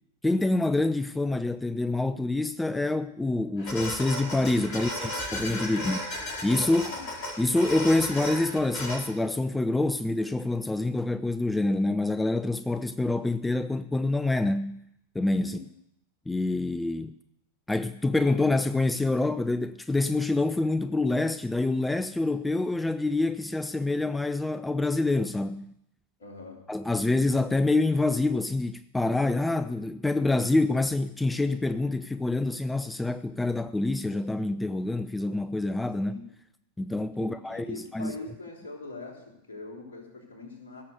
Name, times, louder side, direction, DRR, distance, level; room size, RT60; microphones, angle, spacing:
voice 1, 0.2-6.0 6.4-6.9 7.4-14.8 15.1-15.6 16.3-17.2 17.7-25.7 26.7-36.2 36.8-38.1, left 2 dB, 5° left, 0.4 m, -26 dB
sound 1, 3.6-9.0, left 1 dB, 35° left, 5.2 m, -35 dB
voice 2, 4.7-5.2 5.8-6.0 6.9-7.1 15.4-15.6 26.2-26.7 36.0-36.3 37.2-40.8, left 3 dB, 65° left, 3.5 m, -43 dB
17.0 x 7.0 x 7.9 m
figure-of-eight pair, 90°, 0 cm